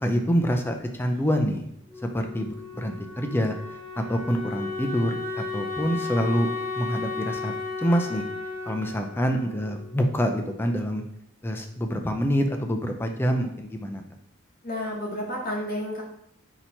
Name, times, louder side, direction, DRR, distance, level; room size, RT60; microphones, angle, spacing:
voice 1, 0.0-1.6 2.1-3.5 4.0-6.5 6.8-8.2 8.7-11.0 11.4-14.0, equal, 10° left, 4 dB, 0.4 m, -26 dB
Wind instrument woodwind instrument, 1.9-10.6, left 4 dB, 15° right, 0.8 m, -35 dB
voice 2, 14.6-16.0, left 1 dB, 45° left, -2 dB, 0.8 m, -31 dB
4.1 x 2.9 x 4.5 m, 0.74 s
head